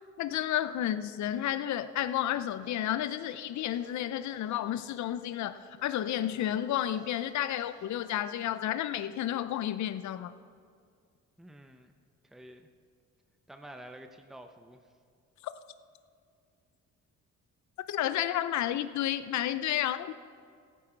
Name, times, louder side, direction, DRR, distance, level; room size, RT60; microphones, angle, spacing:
voice 1, 0.2-10.3 17.9-20.1, left 12 dB, 70° left, 12 dB, 0.6 m, -31 dB
sound 1, 2.5-7.9, right 2 dB, 55° right, 2.7 m, -57 dB
voice 2, 11.4-11.9 12.3-12.7 13.5-14.8, right 1 dB, ahead, 6 dB, 0.8 m, -49 dB
15.5 x 9.3 x 4.5 m, 2.2 s
cardioid pair, 90°, 30 cm